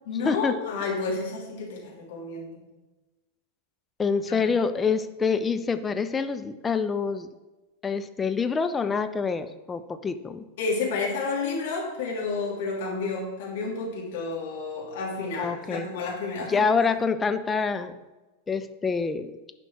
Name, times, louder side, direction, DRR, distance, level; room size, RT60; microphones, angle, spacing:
voice 1, 0.1-2.7 4.3-4.5 10.6-16.9, left 4 dB, 55° left, -3 dB, 2.8 m, -31 dB
voice 2, 4.0-7.3 7.8-10.4 15.4-15.9 16.5-17.9 18.5-19.3, left 5 dB, 15° left, 9 dB, 0.6 m, -26 dB
11.0 x 5.3 x 4.8 m, 1.2 s
figure-of-eight pair, 90°, 0 cm